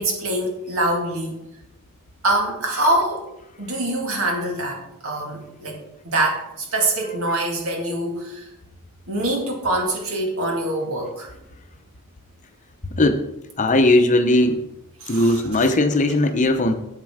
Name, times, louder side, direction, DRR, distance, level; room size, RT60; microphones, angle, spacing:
voice 1, 0.0-1.4 2.2-3.3 3.6-5.8 6.0-8.5 9.1-11.3 15.0-15.7, right 1 dB, 65° right, 1 dB, 2.1 m, -24 dB
voice 2, 13.6-14.6 15.1-16.8, left 1 dB, 35° left, 8 dB, 0.8 m, -18 dB
8.2 x 7.5 x 5.0 m, 0.85 s
head